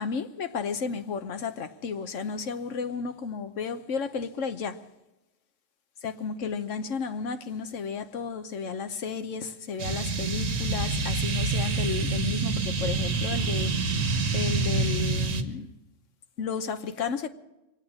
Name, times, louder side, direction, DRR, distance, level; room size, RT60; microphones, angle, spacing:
voice 1, 0.0-4.8 6.0-15.7 16.4-17.3, left 5 dB, 80° left, 1.3 m, -33 dB
sound 1, 9.8-15.4, right 4 dB, 90° right, 1.6 m, -27 dB
24.5 x 8.9 x 6.3 m
omnidirectional pair, 1.3 m